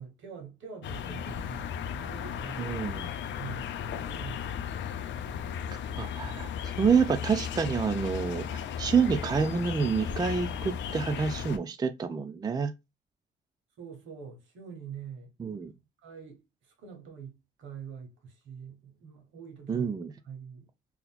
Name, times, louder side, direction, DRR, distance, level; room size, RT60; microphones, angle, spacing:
voice 1, 0.0-2.7 3.4-5.2 13.8-20.0 20.2-20.7, right 6 dB, 75° right, 1.3 m, -45 dB
sound 1, 0.8-11.6, left 8 dB, 70° left, 0.5 m, -35 dB
voice 2, 2.6-3.1 5.7-12.7 15.4-15.7 19.7-20.1, right 6 dB, 20° right, 0.4 m, -28 dB
3.8 x 2.9 x 2.3 m
cardioid pair, 90°, 20 cm